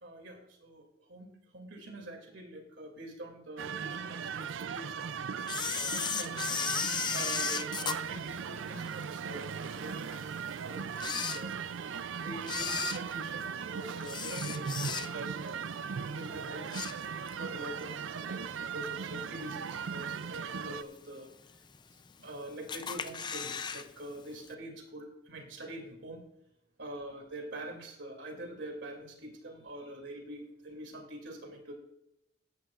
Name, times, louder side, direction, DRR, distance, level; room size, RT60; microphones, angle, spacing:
voice 1, 0.0-6.4 7.1-11.5 11.9-15.6 16.1-16.9 17.3-21.3 22.2-26.2 26.8-31.7, right 1 dB, 70° right, 3 dB, 2.6 m, -45 dB
sound 1, 3.6-20.8, right 6 dB, 90° right, 0.4 m, -38 dB
Camera, 5.5-9.0 9.5-9.6 10.3-10.4 10.9-11.9 12.4-15.4 15.8-16.1 16.4-17.5 17.8-17.9 18.8-18.9 19.5-19.9 20.3-20.4 20.6-20.7 20.9-21.0 21.7-22.3 22.7-23.9 24.1-24.2 24.5-24.6, left 7 dB, 25° left, 0.5 m, -35 dB
16.5 x 11.0 x 2.5 m, 0.82 s
head